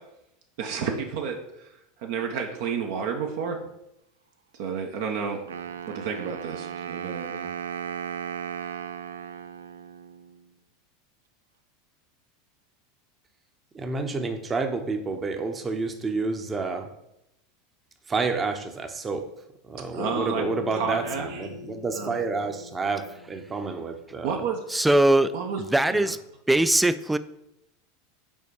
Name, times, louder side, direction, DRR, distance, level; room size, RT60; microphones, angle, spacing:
voice 1, 0.6-3.6 4.6-5.5 5.9-7.5 19.9-20.5 20.7-21.5 21.9-22.2 24.2-24.6 25.3-25.6 25.9-26.1, right 6 dB, 60° right, 3 dB, 0.8 m, -31 dB
Wind instrument woodwind instrument, 5.5-10.4, right 8 dB, 80° right, 0.3 m, -36 dB
voice 2, 13.7-16.9 18.1-19.2 19.7-24.3, right 4 dB, 25° right, 6 dB, 0.8 m, -29 dB
Bass guitar, 20.0-24.3, left 5 dB, 55° left, 1.0 m, -41 dB
voice 3, 24.7-25.3 25.7-26.2 26.5-27.2, right 1 dB, 5° right, 13 dB, 0.4 m, -20 dB
5.5 x 4.2 x 4.8 m, 0.84 s
hypercardioid pair, 85°, 0 cm